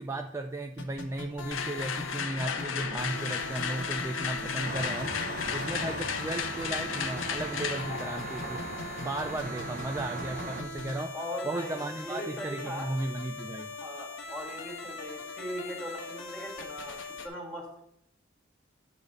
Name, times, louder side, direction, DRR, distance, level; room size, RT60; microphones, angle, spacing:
voice 1, 0.0-8.6 9.0-11.1 11.5-13.7, right 2 dB, 15° right, 5 dB, 0.4 m, -35 dB
sound 1, 0.8-17.3, left 3 dB, 70° left, 1.3 m, -41 dB
sound 2, 1.5-9.5, left 6 dB, 90° left, 0.7 m, -35 dB
sound 3, 4.6-10.6, right 3 dB, 40° right, 0.9 m, -39 dB
voice 2, 11.1-12.9 13.8-17.8, equal, 5° left, -3 dB, 1.9 m, -39 dB
8.8 x 3.3 x 6.5 m, 0.74 s
head